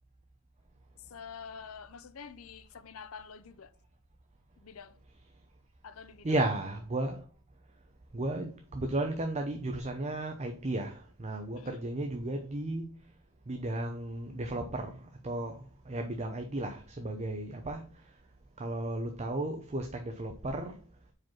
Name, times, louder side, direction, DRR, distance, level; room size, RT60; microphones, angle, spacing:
voice 1, 1.1-3.7 4.6-5.0 5.8-6.3 11.5-11.8, left 6 dB, 85° left, 0.6 m, -47 dB
voice 2, 6.2-7.2 8.1-13.1 13.5-18.2 18.6-20.8, right 2 dB, 30° right, 0.7 m, -34 dB
4.9 x 4.6 x 5.9 m
head